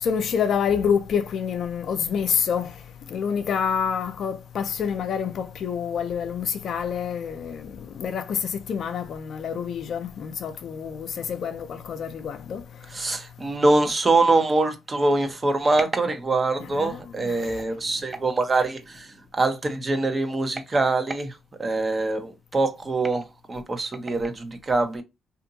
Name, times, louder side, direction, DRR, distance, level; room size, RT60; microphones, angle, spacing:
voice 1, 0.0-2.8 3.1-12.6 16.6-17.5, left 7 dB, 65° left, 0.4 m, -27 dB
voice 2, 12.9-25.0, right 2 dB, 35° right, 0.7 m, -24 dB
2.6 x 2.5 x 2.6 m
supercardioid pair, 60°, 0 cm